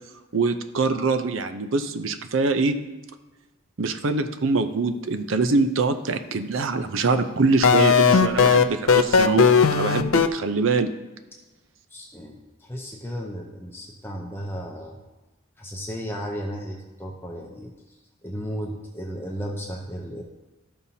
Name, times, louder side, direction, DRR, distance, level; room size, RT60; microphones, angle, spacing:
voice 1, 0.3-2.7 3.8-9.4 9.7-10.9, right 3 dB, 70° right, 9 dB, 0.6 m, -24 dB
sound 1, 7.6-10.3, left 6 dB, 90° left, 0.5 m, -16 dB
voice 2, 11.9-15.0 15.6-17.7 18.2-20.2, equal, 10° left, 0 dB, 0.7 m, -34 dB
13.0 x 5.5 x 2.8 m, 1.1 s
head